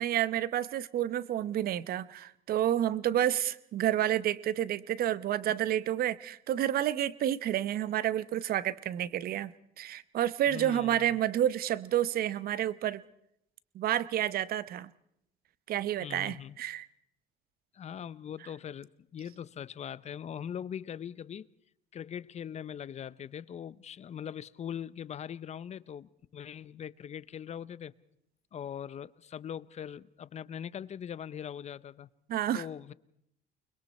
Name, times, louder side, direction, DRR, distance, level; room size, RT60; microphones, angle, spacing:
voice 1, 0.0-13.0 13.7-14.9 15.7-16.9 32.3-32.7, right 11 dB, 60° right, 18 dB, 0.9 m, -30 dB
voice 2, 10.5-11.0 16.0-16.6 17.7-21.5 21.9-27.9 28.5-32.1 32.5-32.9, left 9 dB, 40° left, 19 dB, 0.7 m, -41 dB
29.5 x 21.5 x 4.3 m, 0.75 s
cardioid pair, 110°, 17 cm